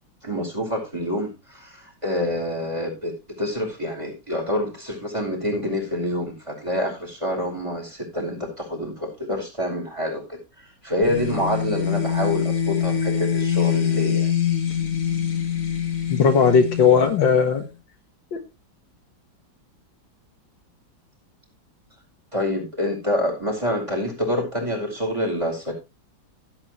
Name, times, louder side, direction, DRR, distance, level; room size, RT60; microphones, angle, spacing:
voice 1, 0.2-10.4 10.8-14.3 22.3-25.7, left 1 dB, 15° right, 2 dB, 5.0 m, -27 dB
sound 1, 11.0-17.7, left 8 dB, 45° left, 2.0 m, -25 dB
voice 2, 16.1-17.6 18.3-18.4, left 6 dB, 70° left, 6 dB, 2.1 m, -17 dB
16.5 x 8.6 x 3.1 m, 0.26 s
omnidirectional pair, 2.2 m